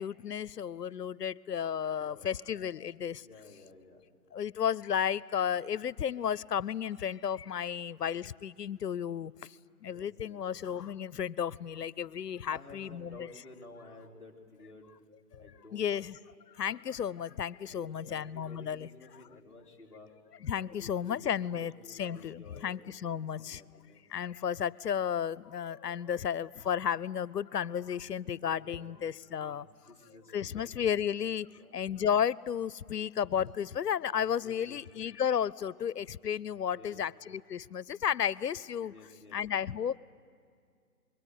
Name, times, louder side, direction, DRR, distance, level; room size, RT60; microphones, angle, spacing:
voice 1, 0.0-3.2 4.3-9.3 9.8-13.3 15.7-16.2 16.6-18.9 20.4-21.7 22.0-23.6 24.1-29.6 30.3-31.5 31.7-38.9 39.3-40.0, left 8 dB, 80° left, 0.7 m, -33 dB
voice 2, 2.0-2.4 3.2-4.0 9.8-10.4 12.5-14.9 15.4-16.1 16.7-16.9 17.7-20.1 20.7-22.7 23.0-24.0 28.4-29.0 29.4-29.6 29.9-31.2 31.6-31.7 34.4-34.8 36.7-37.0 38.9-39.4, left 2 dB, 5° right, 2.4 m, -53 dB
26.0 x 22.0 x 9.1 m
figure-of-eight pair, 145°, 47 cm